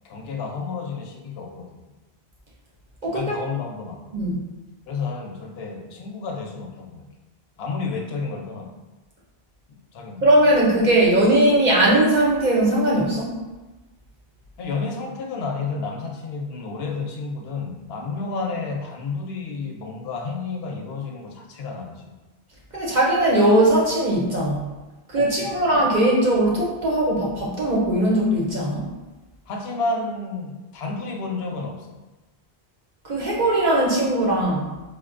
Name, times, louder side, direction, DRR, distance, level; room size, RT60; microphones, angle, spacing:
voice 1, 0.0-1.8 3.1-4.0 4.9-7.1 7.6-8.7 9.7-10.2 14.6-22.1 25.2-25.6 29.5-32.0, left 4 dB, 75° left, 2 dB, 0.8 m, -31 dB
voice 2, 3.0-3.3 4.1-4.4 10.2-13.4 22.7-24.6 25.1-28.9 33.0-34.7, right 1 dB, 50° right, -4 dB, 0.7 m, -19 dB
4.8 x 2.1 x 2.5 m, 1.1 s
omnidirectional pair, 1.1 m